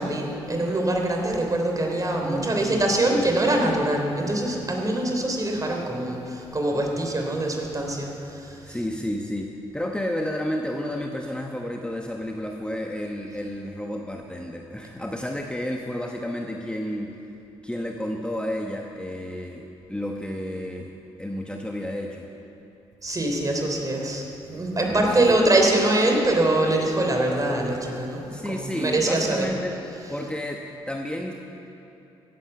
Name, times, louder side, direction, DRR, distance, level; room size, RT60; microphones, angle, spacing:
voice 1, 0.0-8.9 23.0-29.5 29.9-30.3, right 1 dB, 30° right, 1 dB, 3.4 m, -24 dB
voice 2, 2.2-3.2 8.6-17.1 17.6-20.9 21.2-22.3 24.9-25.5 28.3-29.8 30.1-31.3, left 1 dB, 10° left, 1 dB, 1.2 m, -31 dB
16.0 x 9.1 x 6.9 m, 2.9 s
hypercardioid pair, 50°, 12 cm